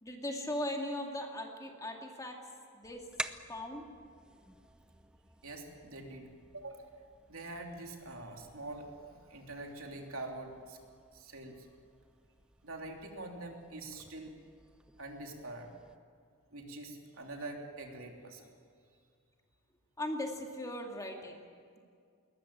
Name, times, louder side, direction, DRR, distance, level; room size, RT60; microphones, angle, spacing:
voice 1, 0.0-2.4 2.7-3.0 3.5-3.9 20.0-21.4, left 1 dB, 15° left, 1 dB, 2.5 m, -38 dB
sound 1, 2.8-16.0, right 1 dB, 5° right, 0.6 m, -51 dB
voice 2, 5.4-7.0 7.3-10.8 11.1-11.7 12.6-14.3 15.0-15.7 16.5-18.5, right 2 dB, 70° right, 2 dB, 3.2 m, -45 dB
21.0 x 20.5 x 8.8 m, 2.2 s
head